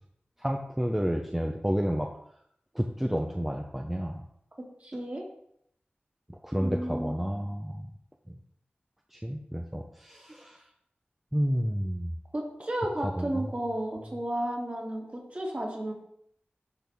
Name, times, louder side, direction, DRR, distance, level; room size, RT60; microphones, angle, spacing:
voice 1, 0.4-2.1 2.7-4.2 6.3-7.9 8.3-8.4 9.1-10.6 11.3-12.1 13.2-13.5, equal, 5° right, 2 dB, 0.7 m, -30 dB
voice 2, 4.8-5.3 6.6-7.2 12.3-15.9, right 1 dB, 40° right, -2 dB, 2.5 m, -33 dB
12.5 x 4.1 x 3.6 m, 0.71 s
wide cardioid pair, 50°, 4 cm